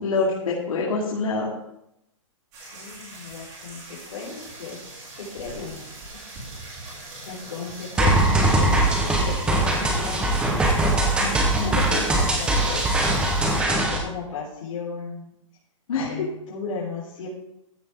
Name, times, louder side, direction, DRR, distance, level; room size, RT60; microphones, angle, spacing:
voice 1, 0.0-1.5 11.2-11.8 15.9-16.1, left 3 dB, 85° left, -3 dB, 2.7 m, -26 dB
sound 1, 2.5-13.6, right 2 dB, 25° right, 3.9 m, -41 dB
voice 2, 2.7-4.8 5.1-6.2 6.9-10.4 11.5-13.1 13.7-15.3 15.9-17.3, left 5 dB, 70° left, -6 dB, 4.3 m, -35 dB
sound 2, 8.0-14.0, right 2 dB, 5° right, 1.0 m, -21 dB
14.5 x 8.3 x 3.7 m, 0.83 s
hypercardioid pair, 175°, 17 cm